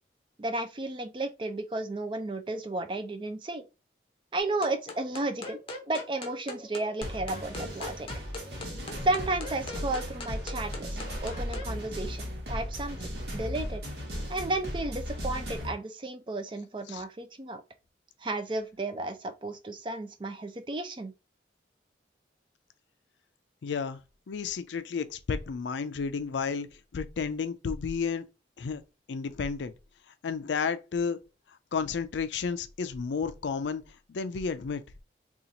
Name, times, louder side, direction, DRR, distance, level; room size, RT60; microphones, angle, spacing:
voice 1, 0.4-3.6 4.3-5.6 5.9-8.1 9.0-13.0 13.3-13.8 14.3-17.6 18.2-21.1, right 2 dB, 25° right, 0.4 m, -33 dB
sound 1, 4.4-11.7, left 3 dB, 30° left, 0.6 m, -42 dB
sound 2, 7.0-15.7, equal, 60° right, 1.2 m, -36 dB
voice 2, 8.5-9.1 16.9-17.0 23.6-24.0 24.3-26.7 26.9-28.2 28.6-28.8 29.1-29.7 30.2-31.2 31.7-33.8 34.1-34.8, left 5 dB, 85° left, 0.4 m, -32 dB
2.8 x 2.4 x 3.9 m
head